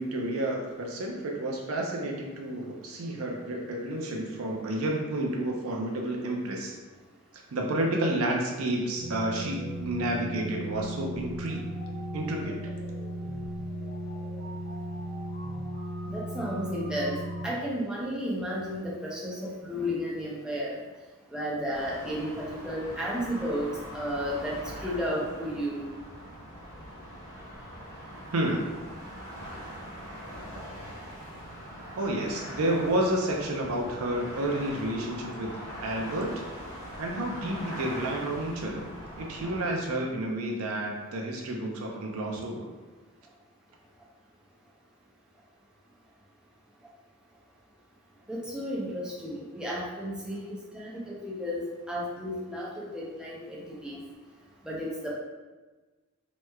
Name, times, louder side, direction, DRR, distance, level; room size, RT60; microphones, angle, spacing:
voice 1, 0.0-6.8 7.5-11.6 12.1-12.6 28.3-28.7 32.0-35.5 35.8-36.4 37.0-38.9 39.2-42.7, right 1 dB, 75° right, 0 dB, 0.5 m, -30 dB
sound 1, 9.0-17.5, right 1 dB, 55° left, 1.0 m, -36 dB
voice 2, 16.1-17.2 17.4-20.8 21.3-23.7 23.9-24.5 24.8-25.9 48.3-54.0 54.7-55.1, equal, 5° right, -6 dB, 0.5 m, -33 dB
sound 2, 21.7-39.8, equal, 30° left, 1.3 m, -42 dB
3.3 x 3.0 x 2.3 m, 1.2 s
head